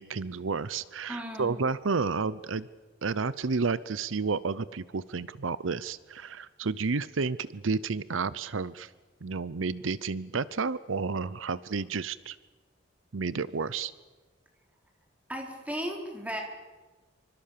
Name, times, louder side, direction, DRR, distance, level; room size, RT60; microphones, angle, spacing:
voice 1, 0.0-2.7 3.0-8.9 9.2-12.4 13.1-13.9, right 4 dB, 85° right, 17 dB, 0.7 m, -31 dB
voice 2, 1.1-1.6 15.3-16.4, equal, 10° right, 1 dB, 4.3 m, -35 dB
26.5 x 25.0 x 6.8 m, 1.2 s
head